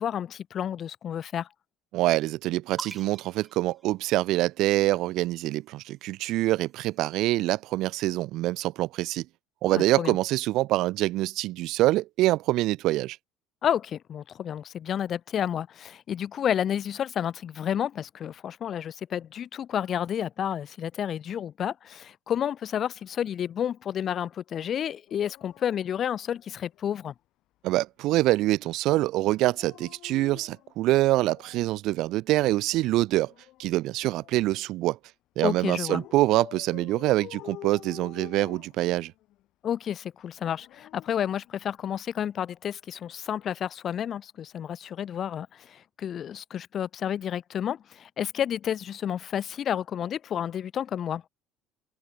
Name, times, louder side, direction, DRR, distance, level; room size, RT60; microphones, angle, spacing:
voice 1, 0.0-1.5 9.7-10.2 13.6-27.1 35.4-36.0 39.6-51.2, left 9 dB, 30° left, 3.6 m, -30 dB
voice 2, 1.9-9.2 9.6-13.2 27.6-33.3 33.6-35.0 35.4-39.1, right 17 dB, 55° right, 1.0 m, -25 dB
sound 1, 2.8-4.6 5.7-7.3, right 3 dB, 10° right, 2.9 m, -45 dB
Dog, 25.1-26.9 29.4-31.8 33.0-34.7 35.9-39.4 40.4-42.0 43.3-43.5, left 16 dB, 50° left, 3.8 m, -49 dB
cardioid pair, 175°, 0 cm